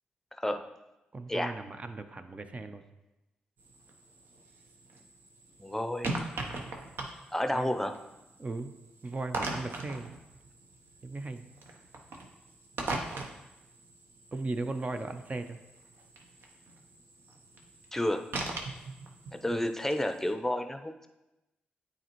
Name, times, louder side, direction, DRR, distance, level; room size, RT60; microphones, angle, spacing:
voice 1, 1.1-2.8 7.5-7.8 8.4-8.7 9.0-10.1 11.0-11.4 14.3-15.6 19.5-19.7, right 3 dB, 35° right, 8 dB, 0.6 m, -37 dB
sound 1, 3.6-20.3, right 2 dB, 70° right, 0.8 m, -41 dB
voice 2, 5.6-6.2 7.3-7.9 17.9-18.2 19.4-21.1, left 1 dB, 10° left, 7 dB, 0.6 m, -31 dB
8.9 x 4.2 x 3.0 m, 0.99 s
supercardioid pair, 45°, 4 cm